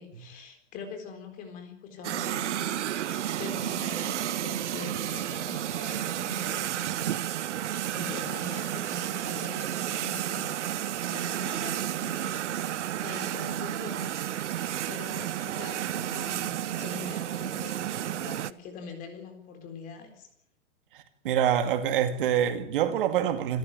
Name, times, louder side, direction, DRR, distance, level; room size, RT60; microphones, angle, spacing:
voice 1, 0.0-12.5 13.0-14.1 14.4-20.3, left 5 dB, 20° left, 3.9 m, -44 dB
sound 1, 2.0-18.5, right 11 dB, 70° right, 1.1 m, -32 dB
voice 2, 21.2-23.6, right 9 dB, 45° right, 2.3 m, -25 dB
27.0 x 13.5 x 9.4 m
hypercardioid pair, 170°, 36 cm